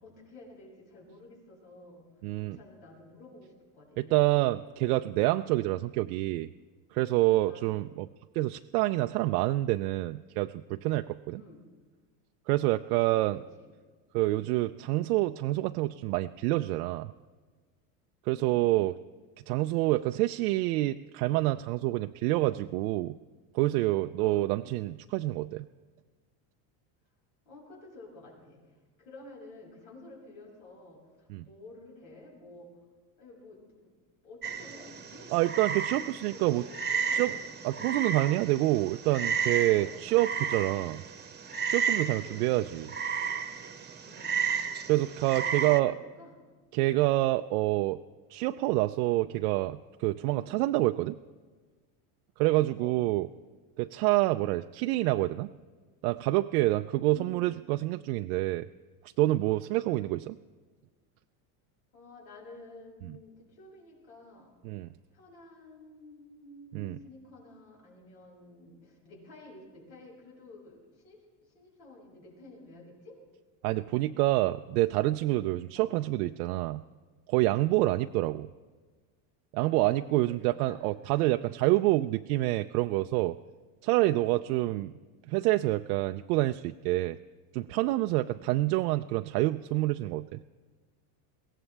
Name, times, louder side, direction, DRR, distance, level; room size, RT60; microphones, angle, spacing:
voice 1, 0.0-2.1 2.4-4.3 7.4-7.8 11.3-11.6 13.1-13.7 18.4-18.7 24.2-24.5 27.4-28.6 29.0-32.7 33.2-33.9 34.2-35.3 36.3-37.4 37.8-38.0 39.7-40.0 42.0-42.4 44.0-44.4 45.4-46.4 50.3-50.6 52.8-53.0 57.1-57.4 61.9-64.6 65.1-71.2 71.5-73.2 75.7-75.9 77.7-77.9 79.6-80.8 81.6-81.7 83.8-84.1 84.6-84.8 88.1-88.3, left 2 dB, 85° left, -2 dB, 6.5 m, -51 dB
voice 2, 2.2-2.6 4.0-6.5 6.9-8.1 8.3-11.4 12.5-13.4 14.1-17.1 18.3-18.9 19.5-23.2 23.5-25.7 31.3-31.4 35.3-36.6 37.1-37.3 37.6-41.0 41.7-42.9 44.9-46.0 46.7-48.0 48.3-51.2 52.4-53.3 53.8-55.5 56.0-58.7 59.2-60.4 64.6-64.9 66.7-67.0 73.6-76.8 77.3-78.5 79.5-83.4 83.8-84.9 85.3-87.2 87.5-90.4, right 18 dB, 85° right, 8 dB, 0.5 m, -27 dB
Frog, 34.4-45.8, right 6 dB, 20° right, 1.0 m, -33 dB
22.5 x 17.0 x 3.3 m, 1.4 s
supercardioid pair, 120°, 44 cm